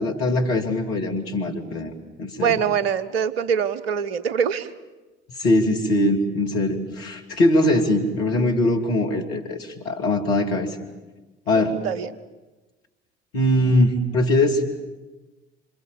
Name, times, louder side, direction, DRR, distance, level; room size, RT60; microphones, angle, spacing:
voice 1, 0.0-1.9 2.2-2.6 5.4-10.8 11.5-11.8 13.3-14.6, left 1 dB, 70° left, 2 dB, 3.1 m, -21 dB
voice 2, 2.4-4.7 11.5-12.1, right 7 dB, 70° right, 16 dB, 1.2 m, -24 dB
28.0 x 26.5 x 7.2 m, 1.2 s
figure-of-eight pair, 55°, 31 cm